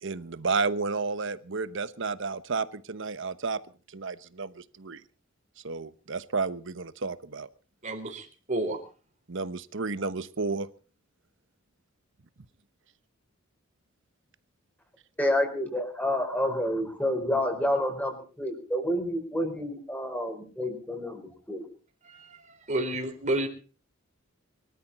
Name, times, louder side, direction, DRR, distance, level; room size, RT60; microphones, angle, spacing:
voice 1, 0.0-3.6 3.9-5.0 5.6-7.5 9.3-10.7, right 4 dB, 65° right, 14 dB, 1.0 m, -31 dB
voice 2, 7.8-8.8 22.0-23.5, right 1 dB, 35° right, 5 dB, 3.9 m, -31 dB
voice 3, 15.2-21.2 21.5-21.6, left 1 dB, 10° left, 5 dB, 4.6 m, -29 dB
23.5 x 13.0 x 4.2 m, 0.38 s
head